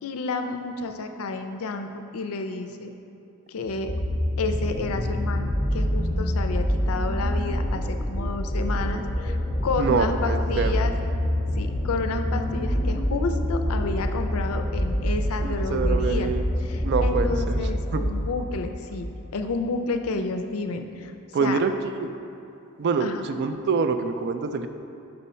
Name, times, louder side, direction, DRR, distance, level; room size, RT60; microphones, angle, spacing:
voice 1, 0.0-2.9 3.5-3.9 4.4-9.4 9.6-10.9 11.6-16.3 16.6-19.1 19.3-21.1 21.4-21.6 23.0-23.2, left 3 dB, 75° left, 6 dB, 0.5 m, -30 dB
sound 1, 3.7-19.3 20.1-20.2, equal, 15° left, 0.5 m, -26 dB
voice 2, 9.8-10.8 15.4-16.4 16.8-17.6 17.9-18.0 21.3-22.1 22.8-24.7, right 5 dB, 50° right, 9 dB, 0.3 m, -25 dB
5.4 x 4.1 x 5.6 m, 2.7 s
head